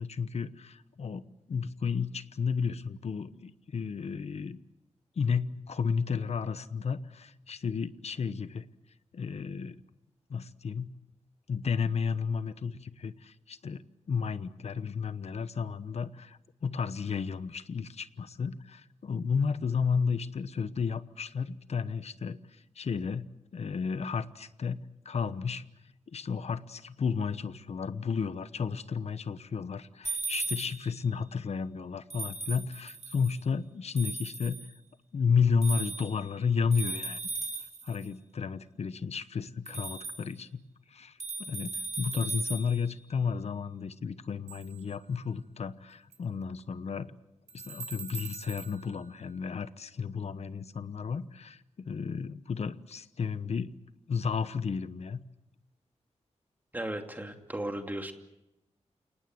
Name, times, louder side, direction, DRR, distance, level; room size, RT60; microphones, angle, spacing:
voice 1, 0.0-4.6 5.2-8.6 9.1-9.8 10.3-10.9 11.5-23.3 23.5-25.6 26.1-34.6 35.1-37.2 37.8-40.6 40.9-41.2 41.5-47.1 47.5-53.8 54.1-55.2, left 6 dB, 65° left, 13 dB, 1.1 m, -32 dB
sound 1, 30.0-30.9 32.1-33.4 34.0-34.7 35.6-36.2 36.7-38.0 39.7-40.2 41.2-42.8 44.5-44.7 46.1-46.2 47.5-48.7, right 3 dB, 75° right, 6.5 m, -37 dB
voice 2, 56.7-58.1, right 1 dB, 15° right, 4 dB, 2.7 m, -36 dB
29.0 x 19.0 x 7.8 m, 0.89 s
wide cardioid pair, 140°, 12 cm